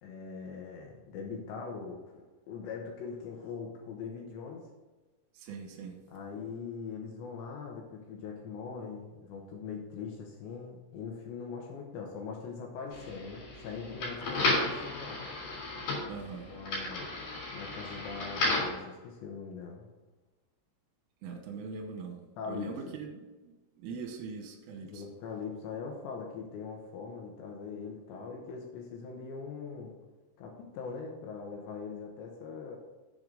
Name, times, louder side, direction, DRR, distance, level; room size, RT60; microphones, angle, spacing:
voice 1, 0.0-4.7 6.1-15.3 16.5-17.1 17.5-19.9 22.4-22.7 24.8-29.9 30.4-32.8, left 5 dB, 75° left, 1 dB, 3.0 m, -41 dB
voice 2, 5.4-6.0 14.3-14.5 16.1-16.5 21.2-25.0, right 5 dB, 80° right, 4 dB, 3.5 m, -42 dB
sound 1, 12.9-18.8, left 2 dB, 45° left, 4.4 m, -33 dB
10.5 x 7.7 x 3.9 m, 1.2 s
omnidirectional pair, 6.0 m